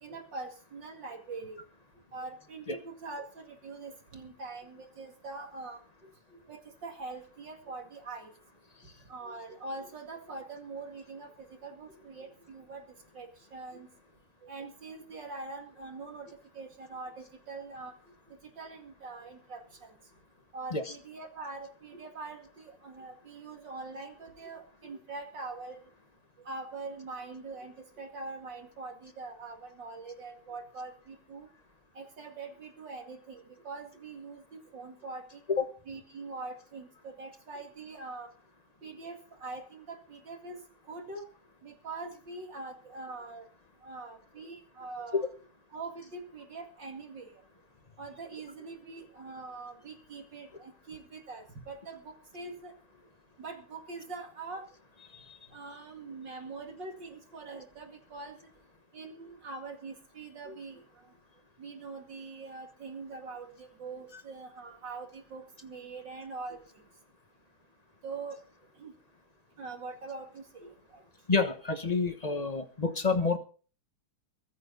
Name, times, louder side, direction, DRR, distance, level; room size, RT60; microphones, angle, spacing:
voice 1, 0.0-1.6 2.1-8.3 9.1-13.9 14.4-17.9 18.3-19.9 20.5-25.8 26.4-31.5 31.9-35.4 35.9-38.3 38.8-40.6 40.9-41.2 41.6-43.5 43.8-45.3 45.7-47.3 48.0-52.7 53.4-54.7 55.5-58.4 58.9-60.8 61.6-66.8 68.0-68.4 68.8-68.9 69.6-71.0, right 3 dB, 55° right, 4 dB, 2.8 m, -43 dB
voice 2, 71.3-73.4, left 4 dB, 25° left, 8 dB, 1.0 m, -28 dB
23.0 x 9.5 x 4.0 m, 0.39 s
omnidirectional pair, 2.4 m